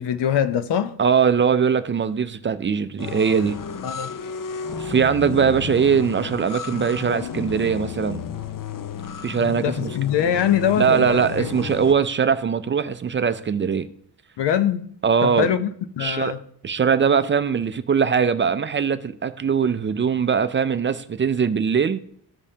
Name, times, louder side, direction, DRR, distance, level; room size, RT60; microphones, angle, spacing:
voice 1, 0.0-0.9 3.8-4.1 9.6-11.5 14.4-14.8 15.2-15.7 16.0-16.4, left 9 dB, 90° left, 0.8 m, -23 dB
voice 2, 1.0-3.6 4.8-8.2 9.2-9.9 10.8-13.9 15.0-15.5 16.0-16.4 16.6-22.0, right 6 dB, 30° right, 0.4 m, -21 dB
sound 1, 3.0-11.9, left 7 dB, 50° left, 0.6 m, -33 dB
14.5 x 5.2 x 2.8 m
wide cardioid pair, 135°, 40 cm